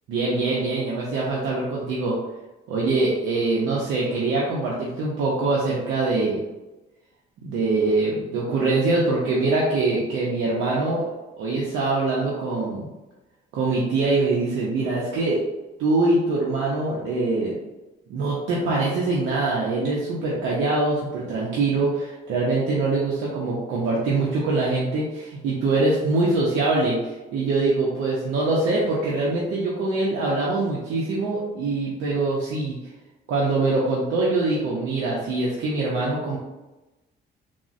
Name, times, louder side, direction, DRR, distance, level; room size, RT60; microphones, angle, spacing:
voice 1, 0.1-2.2 2.7-6.4 7.4-11.1 11.4-12.9 13.5-15.4 15.8-17.6 18.1-32.8 33.3-36.4, right 3 dB, 90° right, -5 dB, 0.6 m, -23 dB
3.6 x 2.0 x 2.4 m, 1.1 s
cardioid pair, 90°, 20 cm